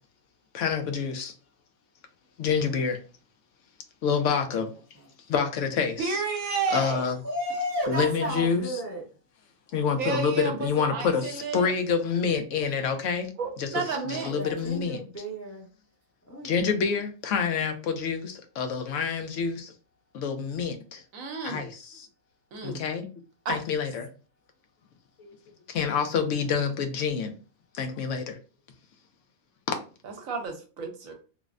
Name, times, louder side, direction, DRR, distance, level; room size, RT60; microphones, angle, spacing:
voice 1, 0.5-1.3 2.4-3.0 4.0-4.7 5.3-6.2 6.7-7.2 7.9-8.6 9.7-13.3 13.6-15.0 16.4-19.7 20.1-21.0 21.4-22.1 22.6-23.1 23.5-24.1 25.2-25.4 25.7-27.3 27.7-28.4, left 6 dB, 70° left, 0.8 m, -27 dB
voice 2, 6.0-7.1 10.0-11.7 13.4-14.3 21.1-21.7 22.5-22.8 23.4-23.6 30.0-31.1, right 4 dB, 75° right, 1.1 m, -31 dB
voice 3, 7.2-9.0 13.9-15.7 16.3-16.7, equal, 15° left, 0.6 m, -34 dB
3.3 x 2.0 x 2.4 m
omnidirectional pair, 1.5 m